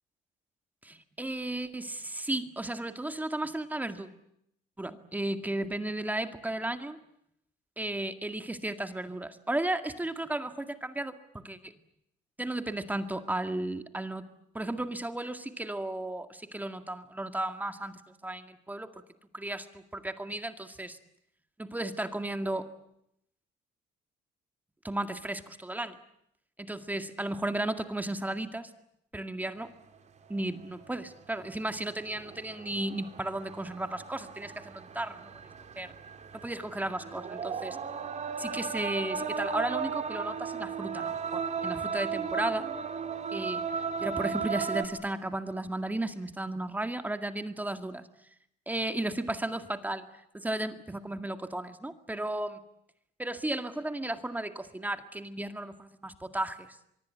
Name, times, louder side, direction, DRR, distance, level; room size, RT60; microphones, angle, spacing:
voice 1, 0.8-4.1 4.8-7.0 7.8-11.7 12.4-14.3 14.5-18.9 19.3-21.0 21.6-22.7 24.8-26.0 26.6-28.7 29.1-29.7 30.3-35.3 35.8-35.9 36.3-37.8 38.4-42.7 43.3-43.6 44.0-48.0 48.7-50.1 50.3-52.6 53.2-56.8, right 1 dB, 10° right, 8 dB, 2.0 m, -34 dB
sound 1, 30.4-30.5 31.3-31.5 32.0-44.8, right 6 dB, 45° right, 3.8 m, -35 dB
24.0 x 23.5 x 9.2 m, 0.76 s
cardioid pair, 110°, 17 cm